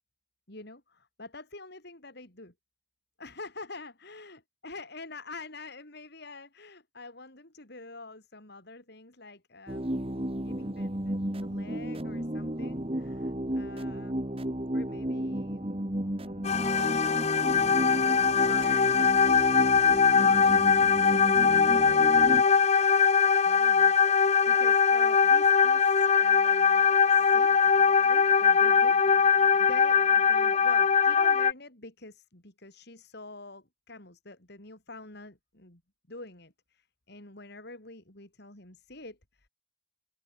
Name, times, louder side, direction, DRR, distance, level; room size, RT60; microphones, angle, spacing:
voice 1, 0.5-2.5 3.2-10.1 10.4-14.2 14.7-15.7 16.1-16.7 17.6-19.0 19.6-22.6 23.4-27.8 28.0-35.8 36.1-39.5, left 3 dB, 55° left, 4.9 m, -47 dB
sound 1, 9.7-22.4, right 1 dB, 30° right, 2.1 m, -33 dB
sound 2, 16.4-31.5, left 6 dB, 35° left, 0.6 m, -22 dB
open air
head